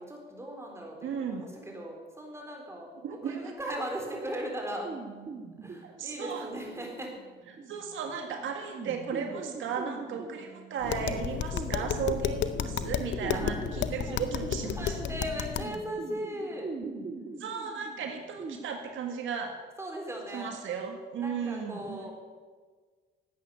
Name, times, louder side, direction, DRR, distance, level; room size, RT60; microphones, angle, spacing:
voice 1, 0.0-4.9 5.6-7.1 13.3-13.6 14.0-14.2 14.6-16.7 19.8-20.6 21.2-22.1, right 1 dB, 15° right, 0 dB, 3.9 m, -38 dB
voice 2, 1.0-1.4 3.0-3.5 5.8-6.5 7.7-15.0 17.4-19.6 20.3-22.1, right 6 dB, 80° right, 4 dB, 1.7 m, -35 dB
sound 1, 4.8-18.6, right 4 dB, 40° right, 1.9 m, -42 dB
Tap, 10.8-15.8, left 9 dB, 70° left, 0.7 m, -32 dB
12.5 x 8.6 x 8.7 m, 1.5 s
cardioid pair, 90°, 20 cm